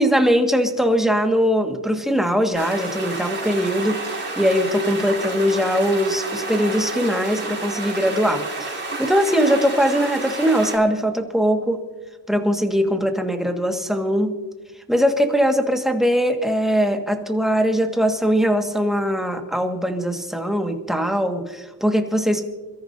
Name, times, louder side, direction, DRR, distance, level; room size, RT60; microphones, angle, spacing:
voice 1, 0.0-4.1 4.4-11.8 12.3-14.4 14.9-22.4, equal, ahead, 4 dB, 1.7 m, -21 dB
sound 1, 2.5-10.8, right 2 dB, 30° right, 5.4 m, -30 dB
28.0 x 14.0 x 2.7 m, 1.3 s
cardioid pair, 85°, 38 cm